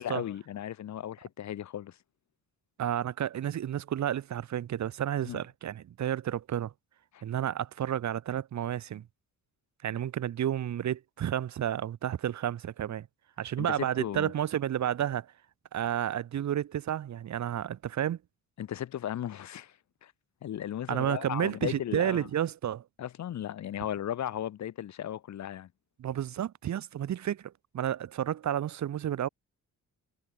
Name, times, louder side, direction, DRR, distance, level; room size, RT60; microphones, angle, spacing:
voice 1, 0.0-2.0 5.2-5.4 7.1-7.2 13.6-14.3 18.6-19.7 20.0-20.1 20.4-22.3 23.0-25.7, left 11 dB, 60° left, 1.0 m, -36 dB
voice 2, 2.8-6.7 7.2-9.0 9.8-13.1 13.4-15.3 15.7-18.2 20.9-22.8 26.0-29.3, right 10 dB, 60° right, 1.1 m, -31 dB
cardioid pair, 125°, 32 cm